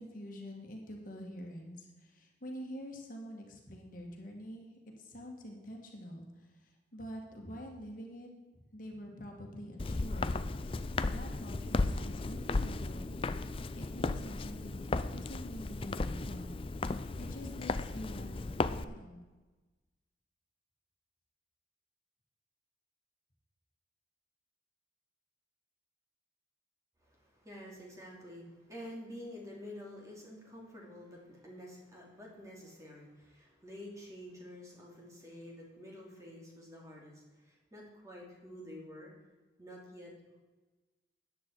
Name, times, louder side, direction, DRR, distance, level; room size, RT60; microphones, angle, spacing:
voice 1, 0.0-4.7 5.0-10.4 10.8-13.4 13.7-19.2, equal, 45° left, 1 dB, 1.9 m, -46 dB
Walk footsteps, 9.8-18.8, left 3 dB, 30° left, 0.4 m, -35 dB
voice 2, 27.0-39.1 39.6-40.1, left 1 dB, 15° right, -2 dB, 2.9 m, -49 dB
14.0 x 9.8 x 4.7 m, 1.2 s
head